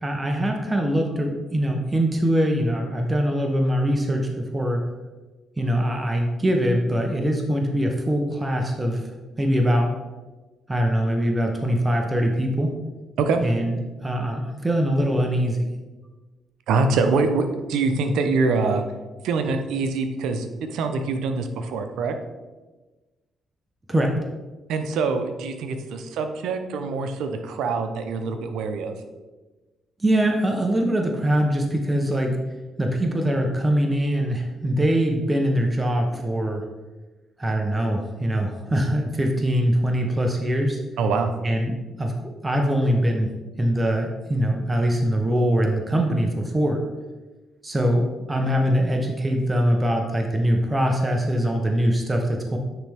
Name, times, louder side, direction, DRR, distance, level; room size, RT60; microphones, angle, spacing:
voice 1, 0.0-4.8 5.6-9.1 9.4-9.9 10.7-12.7 13.4-13.8 14.0-15.7 23.9-24.1 30.0-32.4 32.8-36.6 37.4-40.8 41.4-41.7 42.0-43.3 43.6-46.8 47.6-52.6, equal, 15° right, 2 dB, 0.8 m, -22 dB
voice 2, 16.7-18.8 19.2-22.1 24.7-28.9 41.0-41.3, right 4 dB, 85° right, 7 dB, 0.6 m, -24 dB
9.2 x 3.4 x 3.4 m, 1.2 s
cardioid pair, 90°, 0 cm